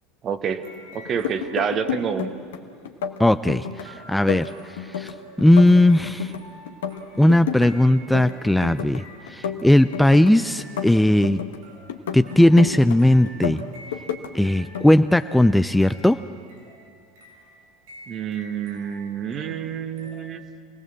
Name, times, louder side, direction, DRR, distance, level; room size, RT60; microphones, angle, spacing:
voice 1, 0.2-0.6 0.9-2.3 18.1-20.4, right 7 dB, 40° right, 9 dB, 1.4 m, -28 dB
sound 1, 0.6-2.2 3.8-20.2, right 1 dB, 75° right, 7.6 m, -48 dB
sound 2, 1.0-2.6 2.8-3.8 4.1-6.4 6.7-7.7 8.0-9.0 9.3-11.6 11.9-13.0 13.3-14.3 14.6-14.9, left 8 dB, 80° left, 1.3 m, -30 dB
voice 2, 3.2-5.1 5.4-6.3 7.2-11.4 12.1-13.6 14.3-16.2, left 1 dB, 5° left, 11 dB, 0.5 m, -18 dB
26.0 x 17.5 x 7.7 m, 2.2 s
hypercardioid pair, 80°, 0 cm